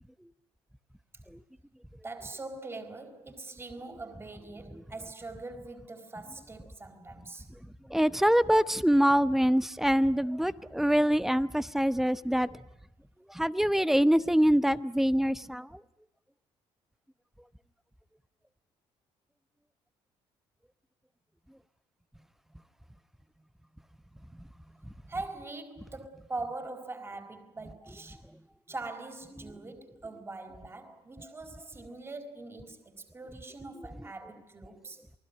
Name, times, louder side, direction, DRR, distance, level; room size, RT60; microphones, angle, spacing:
voice 1, 2.0-7.5 25.1-28.2 28.7-35.1, right 3 dB, 20° right, 4.3 m, -42 dB
voice 2, 7.9-12.5 13.3-15.7, equal, 5° right, 0.9 m, -24 dB
28.0 x 20.0 x 9.1 m
cardioid pair, 100°, 11 cm